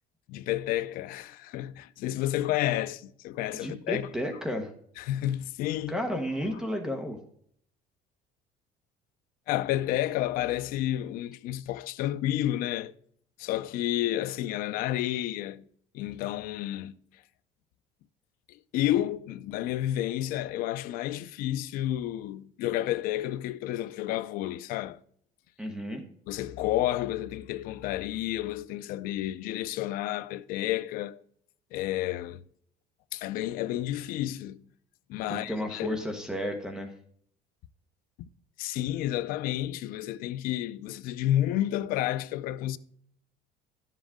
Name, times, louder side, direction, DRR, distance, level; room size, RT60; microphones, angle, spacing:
voice 1, 0.3-4.1 5.0-6.0 9.5-12.9 13.4-15.7 15.9-17.0 18.5-25.0 26.3-31.2 31.7-32.4 33.1-34.7 35.1-36.0 38.6-42.8, left 13 dB, 55° left, 0.5 m, -30 dB
voice 2, 3.6-4.7 5.9-7.2 25.6-26.0 35.3-36.9, equal, 5° right, 1.0 m, -32 dB
11.0 x 7.5 x 3.6 m
cardioid pair, 170°, 17 cm